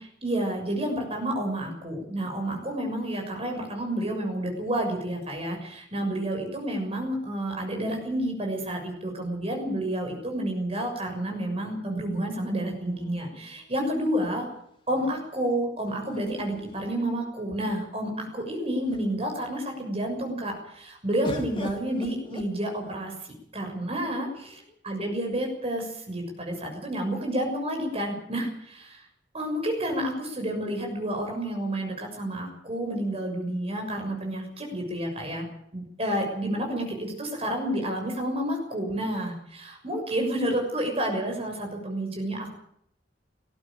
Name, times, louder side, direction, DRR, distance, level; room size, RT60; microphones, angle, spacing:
voice 1, 0.0-14.5 14.9-23.1 23.5-24.3 24.8-29.0 29.3-35.5 35.7-42.5, right 1 dB, 35° right, 2 dB, 6.6 m, -30 dB
sound 1, 12.9-14.0 16.0-17.5 18.3-18.4 18.7-19.3 21.2-23.1 24.0-24.7, left 1 dB, 30° left, 2.8 m, -41 dB
19.5 x 15.0 x 9.0 m, 0.71 s
head